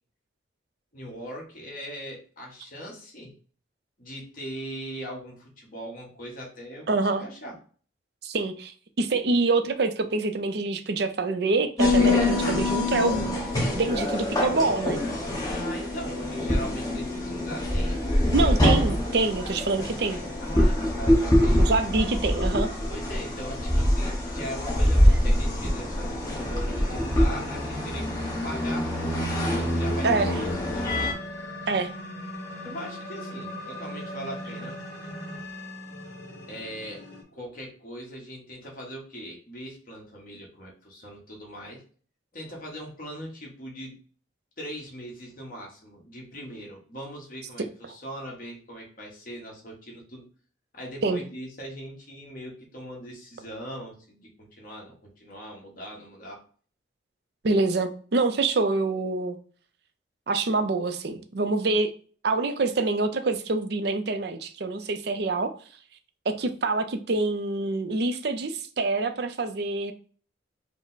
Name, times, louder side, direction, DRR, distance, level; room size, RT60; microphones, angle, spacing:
voice 1, 0.9-3.3 4.0-7.5 15.5-18.0 20.4-21.6 22.9-31.1 32.6-34.8 36.5-37.0 37.3-41.8 42.3-44.0 44.6-50.2 50.7-56.4, equal, 45° left, -2 dB, 1.4 m, -40 dB
voice 2, 6.9-7.3 8.2-13.4 13.8-15.0 18.3-20.2 21.6-22.7 30.0-30.4 31.7-31.9 51.0-51.2 57.4-59.4 60.3-61.9 62.2-65.5 66.3-69.9, right 3 dB, 55° right, 8 dB, 0.5 m, -26 dB
sound 1, 11.8-31.1, left 1 dB, 20° left, 0.9 m, -24 dB
sound 2, 24.5-37.2, equal, 65° left, 1.2 m, -40 dB
5.1 x 2.1 x 4.0 m, 0.42 s
head